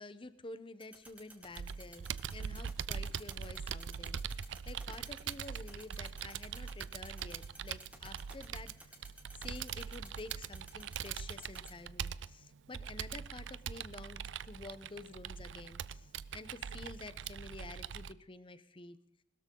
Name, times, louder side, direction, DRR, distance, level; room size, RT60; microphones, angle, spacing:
voice 1, 0.0-19.0, left 2 dB, 30° left, 13 dB, 0.8 m, -50 dB
sound 1, 0.8-11.7, right 2 dB, 10° right, 2.2 m, -52 dB
Computer keyboard, 1.6-18.1, right 7 dB, 85° right, 0.4 m, -42 dB
20.5 x 13.0 x 3.8 m, 0.77 s
head